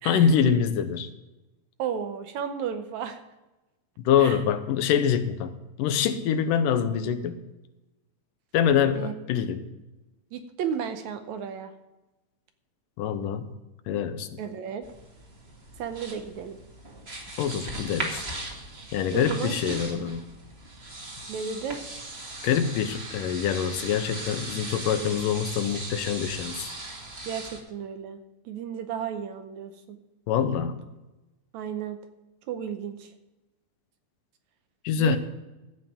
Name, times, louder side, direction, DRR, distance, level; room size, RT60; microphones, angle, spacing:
voice 1, 0.0-1.1 4.0-7.4 8.5-9.7 13.0-13.5 13.9-14.3 17.4-18.2 18.9-20.2 22.4-26.7 30.3-30.8 34.8-35.2, left 8 dB, 85° left, 10 dB, 2.5 m, -25 dB
voice 2, 1.8-3.2 4.2-4.4 9.0-9.1 10.3-11.7 14.4-14.8 15.8-16.6 19.1-20.0 21.3-21.8 25.0-25.1 27.2-28.2 28.5-30.0 31.5-32.0 32.5-33.1 35.0-35.2, right 7 dB, 75° right, 8 dB, 1.9 m, -33 dB
sound 1, 14.8-27.6, right 2 dB, 25° right, 1.4 m, -38 dB
14.5 x 5.6 x 9.0 m, 1.0 s
omnidirectional pair, 3.8 m